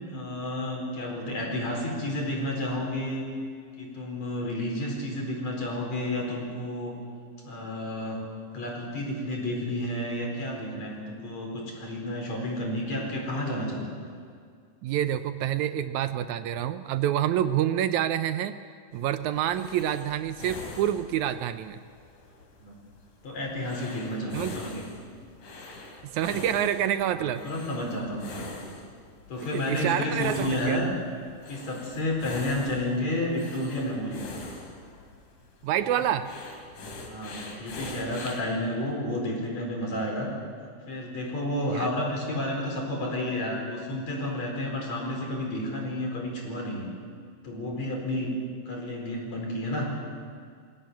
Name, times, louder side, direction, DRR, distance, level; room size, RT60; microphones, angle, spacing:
voice 1, 0.1-3.2 3.8-6.9 7.4-8.2 8.5-14.2 22.6-22.8 23.2-24.9 27.2-28.5 29.3-30.9 31.5-34.3 35.9-36.1 37.0-40.3 40.9-46.9 47.4-48.3 48.7-49.9, left 1 dB, 60° left, 0 dB, 5.8 m, -31 dB
voice 2, 14.8-18.6 18.9-21.8 24.3-24.6 26.0-27.4 29.5-30.8 35.6-36.3 41.7-41.9, right 11 dB, 75° right, 11 dB, 2.0 m, -27 dB
sound 1, 18.9-38.5, left 2 dB, 75° left, 4.3 m, -43 dB
22.5 x 16.5 x 9.5 m, 2.1 s
omnidirectional pair, 3.6 m